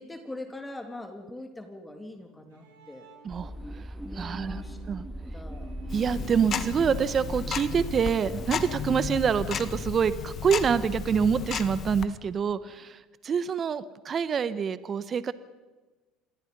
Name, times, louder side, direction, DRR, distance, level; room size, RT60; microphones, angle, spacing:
voice 1, 0.0-3.1 3.9-4.8 5.3-5.7, left 1 dB, 10° left, 5 dB, 3.1 m, -42 dB
Bowed string instrument, 2.2-8.3, right 5 dB, 85° right, 7.8 m, -49 dB
voice 2, 3.2-3.8 4.1-4.6 4.9-5.0 5.9-15.3, right 7 dB, 40° right, 15 dB, 1.1 m, -26 dB
sound 1, 3.3-10.7, equal, 5° right, 1.8 m, -40 dB
Tick-tock, 5.9-12.1, left 8 dB, 45° left, 1.7 m, -34 dB
26.5 x 20.5 x 5.5 m, 1.2 s
hypercardioid pair, 75°, 0 cm